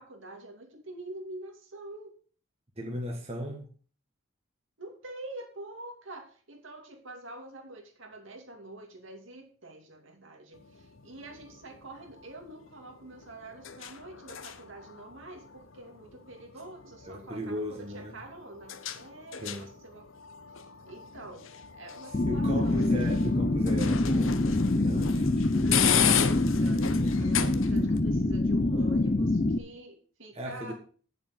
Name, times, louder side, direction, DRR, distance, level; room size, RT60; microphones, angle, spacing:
voice 1, 0.0-2.1 4.8-20.0 20.9-21.4 21.7-23.0 25.7-30.7, right 2 dB, 65° right, 2 dB, 2.7 m, -46 dB
voice 2, 2.8-3.7 17.0-18.2 19.4-19.7 22.3-26.2 30.3-30.7, equal, 30° right, 0 dB, 1.6 m, -37 dB
sound 1, 10.5-28.0, left 8 dB, 70° left, 0.9 m, -35 dB
sound 2, 22.1-29.6, left 2 dB, 30° left, 0.6 m, -25 dB
9.3 x 7.2 x 6.4 m, 0.41 s
head